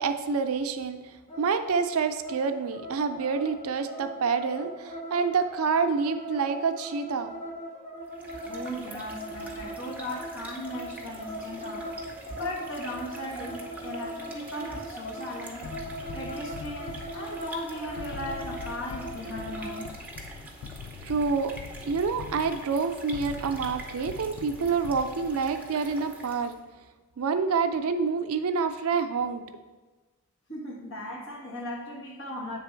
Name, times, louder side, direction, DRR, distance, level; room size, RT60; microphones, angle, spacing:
voice 1, 0.0-7.3 21.0-21.5 21.8-26.6 27.2-29.4, right 5 dB, 75° right, 0.4 m, -27 dB
sound 1, 1.3-19.9, right 1 dB, 25° left, 0.9 m, -40 dB
sound 2, 8.0-26.7, right 2 dB, 5° right, 0.6 m, -45 dB
voice 2, 8.4-11.9 12.4-15.6 16.1-19.9 30.5-32.6, left 1 dB, 60° left, 1.2 m, -37 dB
sound 3, 15.6-25.6, left 5 dB, 75° left, 0.3 m, -43 dB
8.0 x 3.4 x 4.4 m
head